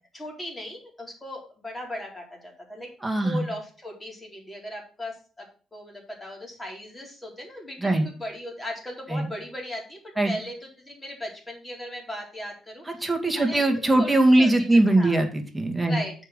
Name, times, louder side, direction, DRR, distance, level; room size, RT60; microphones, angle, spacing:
voice 1, 0.1-5.5 5.7-14.1 14.4-14.5 15.0-15.2 15.9-16.1, left 1 dB, 15° left, 0 dB, 4.0 m, -37 dB
voice 2, 3.0-3.4 7.8-8.0 9.1-9.3 10.2-10.4 12.9-16.0, right 2 dB, 10° right, 3 dB, 2.1 m, -21 dB
7.2 x 5.4 x 6.6 m, 0.38 s
cardioid pair, 90°, 0 cm